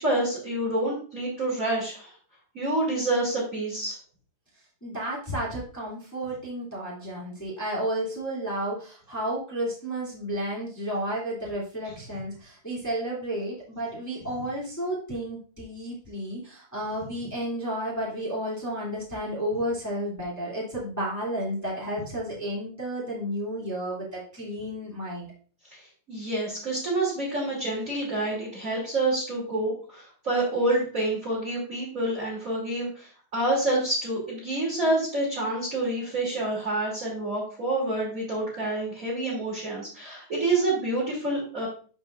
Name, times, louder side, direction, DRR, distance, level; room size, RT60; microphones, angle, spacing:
voice 1, 0.0-2.1 2.5-3.9 25.7-25.8 26.1-41.7, right 2 dB, 20° right, -7 dB, 2.3 m, -28 dB
voice 2, 4.8-25.3, right 1 dB, 15° left, -6 dB, 0.6 m, -32 dB
13.5 x 4.9 x 2.6 m, 0.41 s
omnidirectional pair, 5.7 m